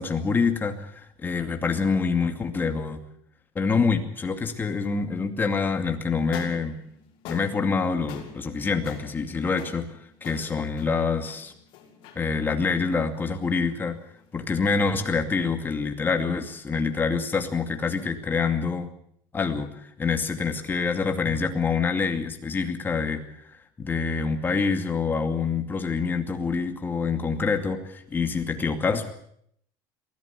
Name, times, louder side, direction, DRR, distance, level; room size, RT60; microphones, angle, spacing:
voice 1, 0.0-3.0 3.5-6.8 7.3-9.9 10.2-11.5 12.2-14.0 14.3-18.9 19.3-23.2 23.5-29.1, left 5 dB, 20° left, 6 dB, 2.4 m, -26 dB
sound 1, 6.2-14.5, left 7 dB, 60° left, 5.9 m, -45 dB
23.5 x 16.0 x 8.4 m, 0.69 s
cardioid pair, 150°, 10 cm